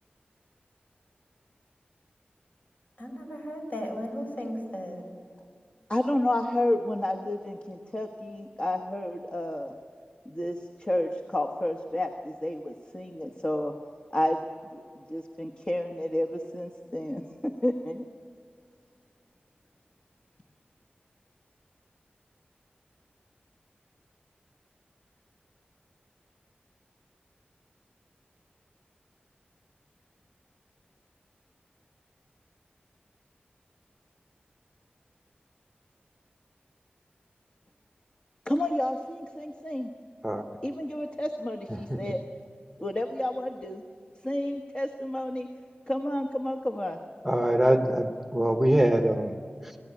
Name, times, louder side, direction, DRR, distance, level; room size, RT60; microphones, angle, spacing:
voice 1, 3.0-5.0, equal, 50° left, 1 dB, 5.5 m, -35 dB
voice 2, 5.9-9.8 10.3-13.7 14.1-14.4 14.7-14.8 15.1-18.0 38.5-39.9 40.6-42.2 42.8-43.8 44.2-45.5 45.9-47.0, left 1 dB, 30° left, 4 dB, 1.3 m, -30 dB
voice 3, 41.7-42.0 47.2-49.8, right 1 dB, 5° right, 5 dB, 1.2 m, -24 dB
27.0 x 15.5 x 8.4 m, 2.2 s
wide cardioid pair, 70°, 4 cm